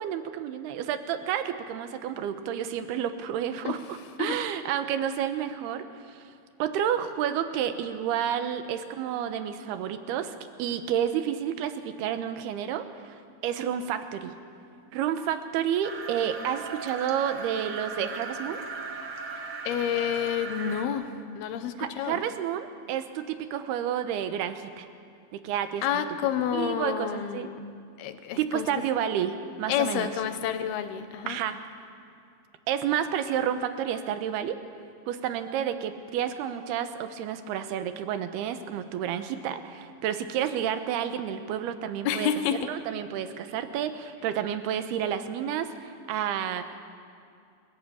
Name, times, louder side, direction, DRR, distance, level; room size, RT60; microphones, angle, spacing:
voice 1, 0.0-6.2 6.6-14.4 14.9-18.6 21.8-24.9 25.3-26.0 26.5-27.5 28.4-30.1 31.3-31.6 32.7-34.6 35.1-42.3 42.6-46.8, right 9 dB, 80° right, 9 dB, 3.0 m, -30 dB
sound 1, 15.8-20.8, right 4 dB, 50° right, 1.7 m, -38 dB
voice 2, 19.7-22.2 25.8-27.6 28.0-28.9 29.7-31.4 42.0-42.7, left 9 dB, 75° left, 9 dB, 3.0 m, -29 dB
29.5 x 14.0 x 8.6 m, 2.4 s
omnidirectional pair, 4.6 m